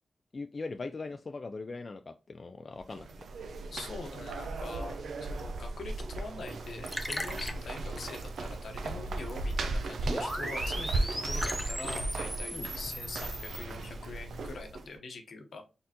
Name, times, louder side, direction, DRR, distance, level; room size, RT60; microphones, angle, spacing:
voice 1, 0.3-3.1 12.5-12.7, left 3 dB, 45° left, 8 dB, 0.3 m, -40 dB
sound 1, 2.8-14.9, right 2 dB, 85° right, 0.5 m, -36 dB
voice 2, 3.7-4.9 5.3-15.6, left 3 dB, 75° left, 5 dB, 1.0 m, -44 dB
Liquid, 6.4-14.5, left 1 dB, 15° left, 0.8 m, -44 dB
sound 2, 10.0-13.6, equal, 10° right, 1.9 m, -37 dB
4.3 x 3.8 x 2.8 m, 0.31 s
cardioid pair, 65°, 0 cm